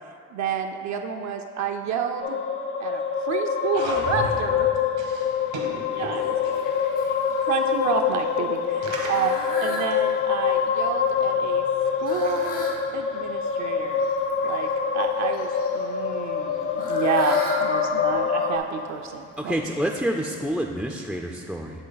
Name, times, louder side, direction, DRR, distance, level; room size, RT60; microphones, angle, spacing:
voice 1, 0.3-2.4 2.8-4.7 5.9-6.4 7.4-9.3 9.6-11.6 12.0-14.1 14.4-19.6, right 7 dB, 65° right, 4 dB, 0.5 m, -30 dB
sound 1, 2.2-18.6, left 7 dB, 45° left, 0.6 m, -25 dB
sound 2, 3.7-4.9, left 4 dB, 65° left, 0.9 m, -35 dB
voice 2, 5.0-5.3 5.5-6.2 6.6-7.5 8.8-9.1, right 3 dB, 85° right, -2 dB, 1.4 m, -36 dB
Fowl, 5.1-20.5, left 1 dB, 85° left, 1.1 m, -40 dB
voice 3, 19.4-21.8, equal, ahead, 1 dB, 0.3 m, -28 dB
9.8 x 3.3 x 4.0 m, 2.7 s
cardioid pair, 90°, 30 cm